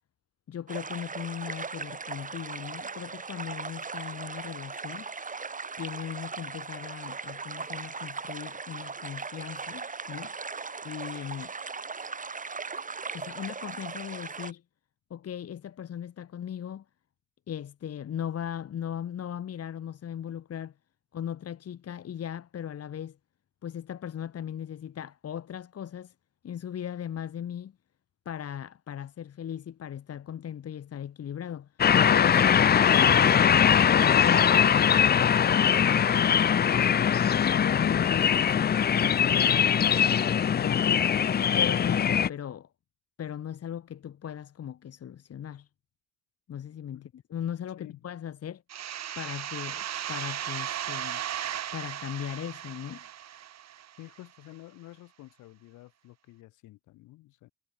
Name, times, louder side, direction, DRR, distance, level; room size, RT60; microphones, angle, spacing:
voice 1, 0.5-5.1 5.8-10.3 10.8-11.5 13.1-14.6 15.1-16.8 17.5-20.7 21.1-23.2 23.6-26.1 26.4-27.7 28.2-31.8 32.1-37.1 37.5-39.9 40.5-41.2 41.5-42.7 43.2-45.7 46.5-48.6 49.1-51.2 51.7-53.0, left 9 dB, 55° left, 1.7 m, -38 dB
sound 1, 0.7-14.5, right 4 dB, 25° right, 1.5 m, -38 dB
sound 2, 31.8-42.3, left 8 dB, 35° left, 0.6 m, -22 dB
sound 3, 48.7-54.2, right 10 dB, 60° right, 2.7 m, -36 dB
voice 2, 54.0-57.5, left 17 dB, 75° left, 8.0 m, -50 dB
hypercardioid pair, 50°, 30 cm